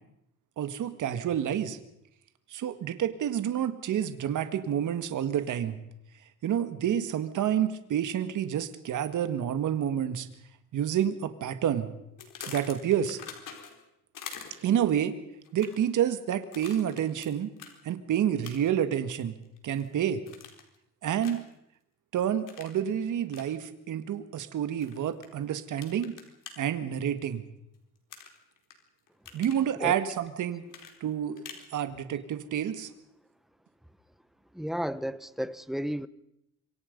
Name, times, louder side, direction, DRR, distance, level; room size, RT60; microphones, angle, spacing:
voice 1, 0.6-1.8 2.5-5.8 6.4-10.3 10.7-11.9 12.5-13.2 14.6-15.2 15.5-17.5 17.9-19.3 19.6-20.2 21.0-21.4 22.1-26.1 26.6-27.4 29.3-30.6 31.0-31.4 31.7-32.9, right 9 dB, 65° right, 1.9 m, -29 dB
sound 1, 12.2-13.8 14.1-14.8 15.4-15.9 16.5-17.3 17.6-17.7 18.4-18.8 19.2-19.9 20.3-20.7 21.2-21.5 22.5-22.8 23.3-23.5 24.8-25.3 25.8-26.5 28.1-28.7 29.1-29.6 30.7-31.7, left 7 dB, 75° left, 4.3 m, -44 dB
voice 2, 34.5-36.1, equal, ahead, 0.9 m, -32 dB
26.5 x 24.0 x 5.4 m
cardioid pair, 125°, 33 cm